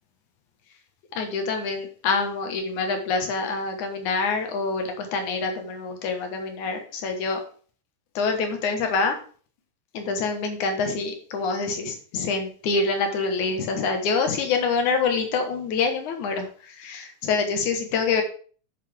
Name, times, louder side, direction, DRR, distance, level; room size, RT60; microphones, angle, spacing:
voice 1, 1.2-7.4 8.2-9.2 9.9-18.2, left 4 dB, 80° left, 5 dB, 2.9 m, -26 dB
8.3 x 7.8 x 3.7 m, 0.43 s
omnidirectional pair, 3.4 m